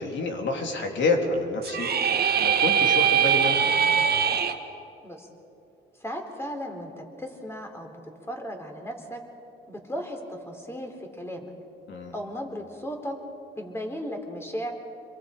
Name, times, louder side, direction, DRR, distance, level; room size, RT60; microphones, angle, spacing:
voice 1, 0.0-3.7 11.9-12.1, left 3 dB, 65° left, 2 dB, 3.3 m, -28 dB
sound 1, 1.6-4.5, right 7 dB, 50° right, 1.4 m, -22 dB
voice 2, 6.0-8.0 8.3-9.2 9.7-11.5 12.1-13.2 13.6-14.7, equal, 10° left, 3 dB, 3.6 m, -36 dB
27.5 x 22.5 x 5.1 m, 2.8 s
cardioid pair, 90°, 20 cm